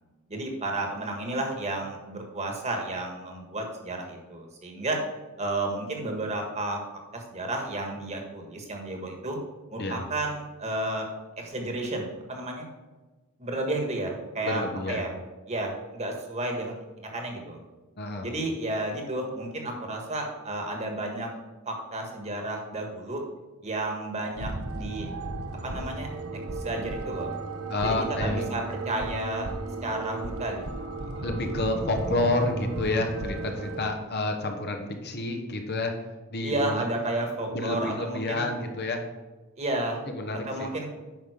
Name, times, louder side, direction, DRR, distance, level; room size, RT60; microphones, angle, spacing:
voice 1, 0.3-5.0 5.4-6.8 7.1-9.4 9.7-11.1 11.4-12.7 13.4-15.1 15.5-16.7 17.1-17.6 18.2-21.3 21.6-23.2 23.6-25.1 25.6-26.1 26.5-27.3 27.8-29.5 29.8-31.3 36.4-38.5 39.6-40.0 40.5-40.9, right 2 dB, 30° right, 2 dB, 1.6 m, -32 dB
voice 2, 14.4-15.0 18.0-18.3 27.7-28.5 31.2-35.9 36.3-36.8 37.5-39.0 40.1-40.7, left 2 dB, 50° left, 4 dB, 1.1 m, -29 dB
sound 1, 24.2-33.9, right 2 dB, 80° right, 1.0 m, -35 dB
9.3 x 5.6 x 5.0 m, 1.2 s
head